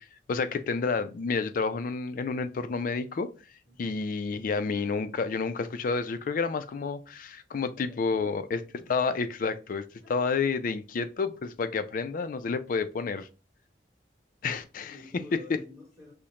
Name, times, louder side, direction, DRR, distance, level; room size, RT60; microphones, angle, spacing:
voice 1, 0.0-3.3 3.8-8.6 8.9-9.8 10.1-13.3 14.4-15.0 15.5-15.6, left 4 dB, 50° left, 0.3 m, -30 dB
voice 2, 3.6-4.0 7.8-8.3 8.8-8.9 10.0-10.5 11.9-12.0 14.9-16.1, left 2 dB, 20° right, 1.3 m, -51 dB
5.0 x 2.1 x 2.8 m
head